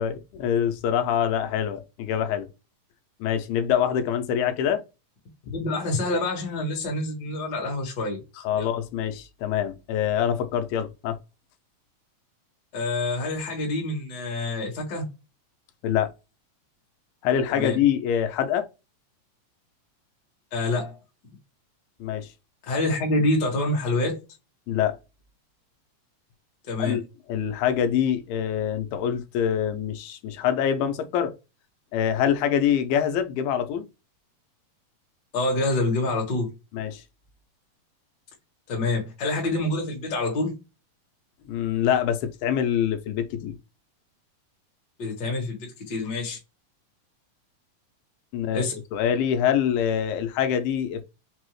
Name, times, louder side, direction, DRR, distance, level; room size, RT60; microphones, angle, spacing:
voice 1, 0.0-2.5 3.2-4.8 5.5-5.6 8.4-11.2 15.8-16.1 17.2-18.7 22.0-22.3 24.7-25.0 26.8-27.0 27.3-31.3 31.9-33.9 36.7-37.0 41.5-43.6 48.3-48.6 48.9-51.0, left 9 dB, 90° left, 2.4 m, -25 dB
voice 2, 5.5-8.2 8.6-8.7 12.7-15.1 17.5-17.8 20.5-21.0 22.7-24.2 26.7-27.0 35.3-36.5 38.7-40.6 45.0-46.4 48.5-48.8, left 2 dB, 50° left, 1.2 m, -27 dB
5.4 x 2.0 x 3.1 m
omnidirectional pair, 4.0 m